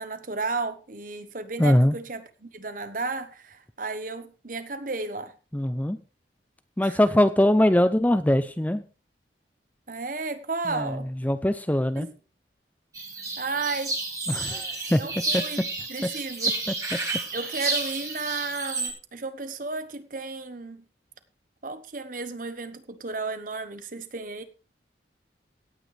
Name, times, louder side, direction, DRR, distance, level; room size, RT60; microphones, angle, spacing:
voice 1, 0.0-5.3 6.8-7.0 9.9-11.1 12.0-12.1 13.4-13.9 15.0-15.6 15.9-16.6 17.3-20.8 21.6-24.4, right 3 dB, 45° right, 1.1 m, -33 dB
voice 2, 1.6-1.9 5.5-6.0 6.8-8.8 10.7-12.1 14.3-15.4 16.7-16.8, left 1 dB, 10° left, 0.5 m, -22 dB
sound 1, 12.9-18.9, right 3 dB, 20° right, 2.2 m, -31 dB
17.0 x 9.0 x 3.4 m
head